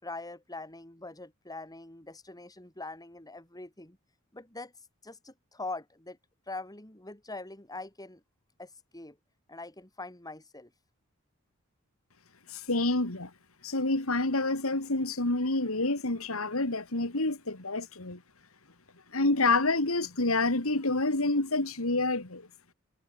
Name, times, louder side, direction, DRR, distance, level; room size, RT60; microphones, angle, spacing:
voice 1, 0.0-4.0 4.3-4.7 5.0-6.2 6.5-8.2 8.6-9.2 9.5-10.7, left 2 dB, 20° left, 4.7 m, -43 dB
voice 2, 12.5-13.3 13.6-18.2 19.1-22.5, left 2 dB, 80° left, 3.0 m, -28 dB
head